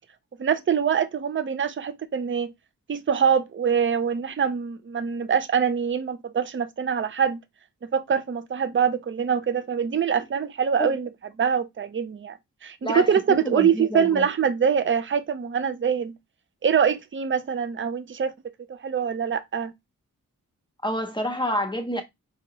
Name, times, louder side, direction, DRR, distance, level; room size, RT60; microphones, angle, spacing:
voice 1, 0.4-2.5 2.9-7.4 7.8-11.1 11.4-12.4 12.6-16.2 16.6-18.3 18.7-19.7, right 7 dB, 40° right, 0.5 m, -24 dB
voice 2, 12.8-13.2 13.4-14.3 20.8-22.0, equal, 15° left, 0.8 m, -28 dB
4.7 x 2.8 x 2.9 m
wide cardioid pair, 85°, 32 cm